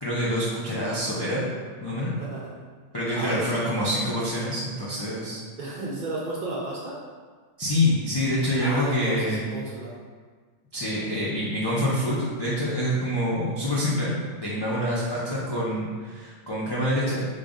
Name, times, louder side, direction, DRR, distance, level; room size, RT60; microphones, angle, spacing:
voice 1, 0.0-1.5 1.8-2.1 2.9-5.4 7.6-9.6 10.7-14.1 14.4-17.2, left 1 dB, 45° left, -8 dB, 0.3 m, -26 dB
voice 2, 2.2-2.5 3.1-3.5 5.6-7.0 8.6-10.0, right 2 dB, 55° right, -5 dB, 0.5 m, -33 dB
3.3 x 2.6 x 3.5 m, 1.5 s
omnidirectional pair, 1.2 m